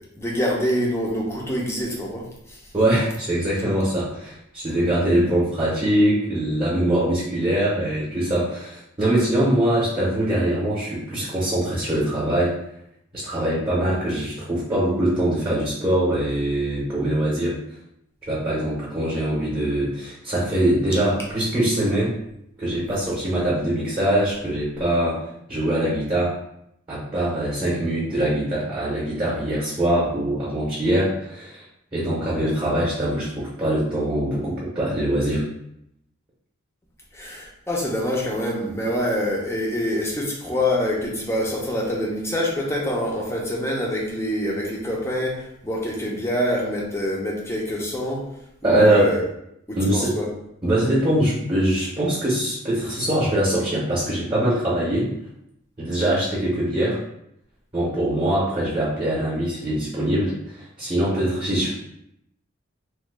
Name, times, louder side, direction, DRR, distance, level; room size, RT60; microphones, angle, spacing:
voice 1, 0.2-2.6 37.1-48.3 48.6-49.2 49.7-50.3, left 1 dB, 10° left, -2 dB, 0.5 m, -25 dB
voice 2, 2.7-12.5 13.1-17.5 18.2-22.1 22.6-25.2 25.5-26.4 26.9-31.6 31.9-35.4 48.6-49.1 49.8-50.1 50.6-55.1 55.8-57.0 57.7-61.7, right 1 dB, 20° right, -6 dB, 0.8 m, -23 dB
3.0 x 2.2 x 3.4 m, 0.79 s
head